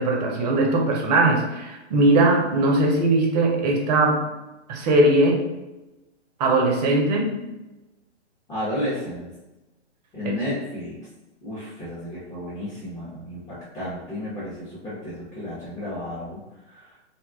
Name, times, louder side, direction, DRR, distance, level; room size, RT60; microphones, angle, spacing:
voice 1, 0.0-4.3 4.7-5.5 6.4-7.4 10.2-10.3, right 2 dB, 35° right, 1 dB, 0.6 m, -20 dB
voice 2, 8.5-9.4 10.1-11.1 11.4-17.0, left 1 dB, 10° left, -12 dB, 0.8 m, -32 dB
2.6 x 2.3 x 3.5 m, 1.0 s
hypercardioid pair, 130°, 35 cm